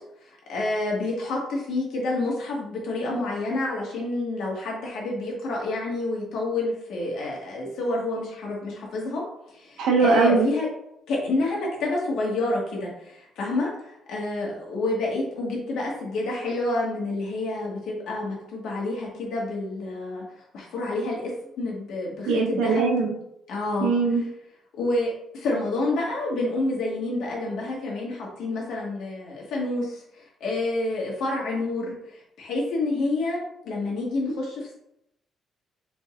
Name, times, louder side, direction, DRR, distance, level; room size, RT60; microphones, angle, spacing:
voice 1, 0.2-9.2 9.5-10.7 11.1-20.2 20.5-22.8 23.5-23.9 24.8-34.7, left 2 dB, 75° left, -3 dB, 1.5 m, -28 dB
voice 2, 9.8-10.5 22.3-23.2 23.8-24.2, right 4 dB, 90° right, 1 dB, 0.9 m, -21 dB
4.3 x 3.8 x 2.4 m, 0.80 s
cardioid pair, 130°, 0 cm